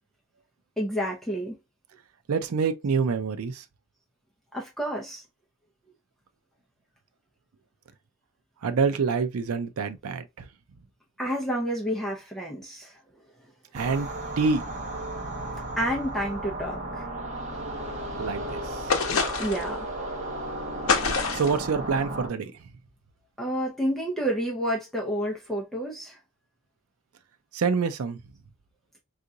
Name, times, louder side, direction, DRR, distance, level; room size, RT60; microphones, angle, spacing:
voice 1, 0.8-1.6 4.5-5.2 11.2-13.0 15.8-17.1 19.4-19.9 23.4-26.2, equal, ahead, 0.6 m, -29 dB
voice 2, 2.3-3.6 8.6-10.5 13.7-14.1 14.4-14.6 18.2-18.8 21.3-22.5 27.5-28.2, right 5 dB, 90° right, 0.5 m, -26 dB
sound 1, 13.7-22.3, right 1 dB, 35° right, 0.8 m, -34 dB
sound 2, 18.9-19.7 20.9-21.6, left 5 dB, 80° left, 0.7 m, -25 dB
3.7 x 2.5 x 2.7 m
head